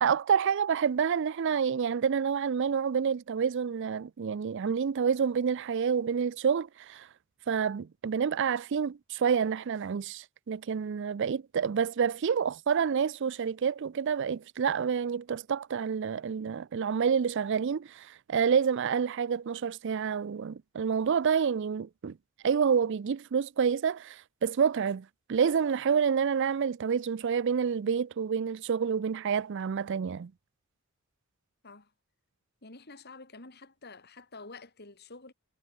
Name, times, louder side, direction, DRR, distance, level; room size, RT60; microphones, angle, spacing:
voice 1, 0.0-7.1 7.5-22.1 22.4-30.3, right 6 dB, 55° right, 0.4 m, -28 dB
voice 2, 32.6-35.3, left 3 dB, 50° left, 3.5 m, -48 dB
head